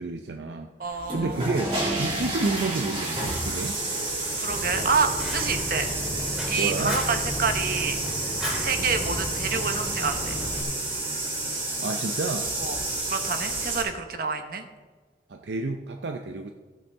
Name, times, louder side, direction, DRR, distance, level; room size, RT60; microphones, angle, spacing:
voice 1, 0.0-3.8 6.6-7.0 8.8-8.9 11.8-12.5 15.3-16.5, right 3 dB, 75° right, 5 dB, 0.6 m, -30 dB
voice 2, 0.8-1.4 4.4-5.9 6.5-8.0 8.6-10.4 12.6-12.8 13.1-14.6, right 5 dB, 55° right, 6 dB, 1.1 m, -28 dB
sound 1, 0.9-13.8, right 2 dB, 30° right, 2.7 m, -30 dB
Fire, 4.5-10.6, equal, 5° right, 2.3 m, -34 dB
15.5 x 8.3 x 3.5 m, 1.4 s
head